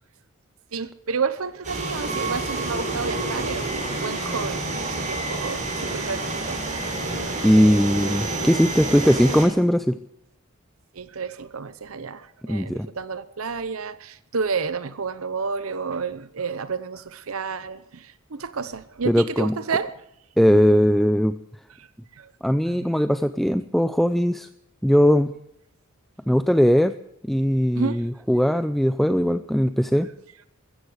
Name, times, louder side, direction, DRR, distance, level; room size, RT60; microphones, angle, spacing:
voice 1, 0.7-6.6 7.2-7.4 10.9-19.9 21.8-21.9 22.1-22.3 22.7-22.9 27.7-28.0, right 5 dB, 85° right, 13 dB, 0.8 m, -31 dB
sound 1, 1.6-9.5, right 2 dB, 35° right, 6.3 m, -28 dB
voice 2, 7.4-10.0 12.5-12.9 19.1-19.5 20.4-21.3 22.4-24.5 24.8-25.3 26.3-26.9 27.3-30.1, equal, ahead, 10 dB, 0.5 m, -19 dB
15.0 x 14.5 x 6.4 m, 0.78 s
head